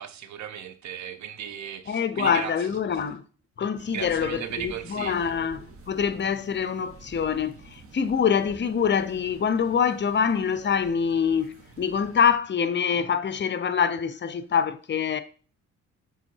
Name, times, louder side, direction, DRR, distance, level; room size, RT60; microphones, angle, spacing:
voice 1, 0.0-2.5 3.9-5.3, right 9 dB, 65° right, 0.9 m, -36 dB
voice 2, 1.9-3.2 3.6-15.2, left 7 dB, 35° left, 0.7 m, -25 dB
sound 1, 3.8-12.4, right 3 dB, 45° right, 1.4 m, -49 dB
7.3 x 3.6 x 4.6 m
cardioid pair, 90°, 30 cm